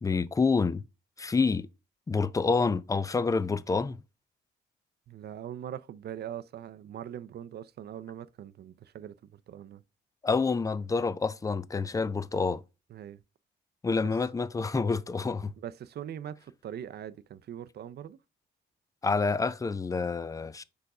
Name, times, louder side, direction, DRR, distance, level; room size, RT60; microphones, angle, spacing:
voice 1, 0.0-0.8 1.2-1.7 2.1-4.0 10.2-12.6 13.8-15.5 19.0-20.6, left 4 dB, 15° left, 0.4 m, -28 dB
voice 2, 5.1-9.8 12.9-13.2 15.6-18.2, right 10 dB, 55° right, 0.5 m, -42 dB
5.1 x 4.7 x 4.8 m
cardioid pair, 90°, 20 cm